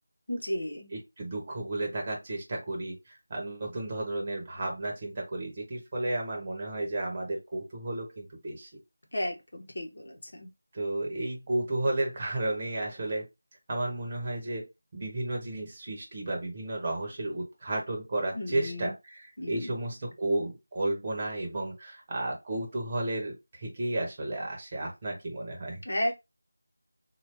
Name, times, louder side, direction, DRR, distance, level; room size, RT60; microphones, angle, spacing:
voice 1, 0.3-0.9 9.1-10.5 18.3-18.9 19.4-19.8 25.8-26.1, left 1 dB, 60° left, 1.0 m, -33 dB
voice 2, 0.9-3.0 3.3-8.7 10.7-13.3 13.7-14.7 14.9-25.8, right 2 dB, 25° right, 1.0 m, -33 dB
2.8 x 2.3 x 3.3 m
figure-of-eight pair, 170°, 0 cm